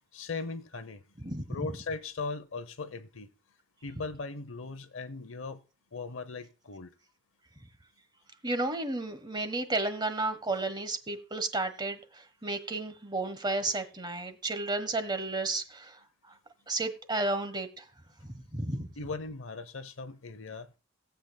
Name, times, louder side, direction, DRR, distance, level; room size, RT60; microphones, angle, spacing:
voice 1, 0.1-1.0 1.5-3.3 3.8-5.6 5.9-6.9 19.0-20.7, left 4 dB, 75° left, 0.9 m, -38 dB
voice 2, 8.4-16.0 16.7-17.8 18.5-18.9, right 2 dB, 20° right, 1.3 m, -32 dB
18.0 x 8.2 x 2.3 m
head